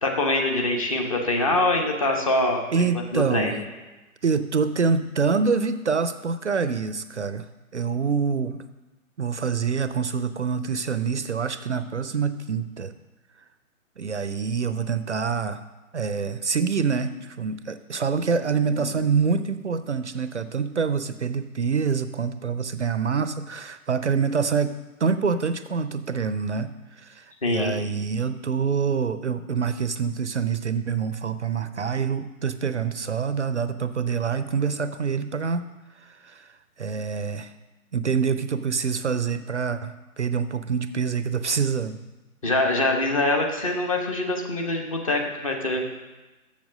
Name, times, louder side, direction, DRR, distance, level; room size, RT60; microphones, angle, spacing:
voice 1, 0.0-3.6 27.4-27.8 42.4-45.8, left 2 dB, 25° left, 2 dB, 0.9 m, -24 dB
voice 2, 2.7-3.6 4.2-7.5 7.7-8.6 9.2-12.9 14.0-15.6 15.9-35.7 36.0-36.5 36.8-37.5 37.9-42.0, right 5 dB, 55° right, 12 dB, 0.5 m, -26 dB
7.3 x 6.9 x 6.3 m, 1.1 s
figure-of-eight pair, 140°, 43 cm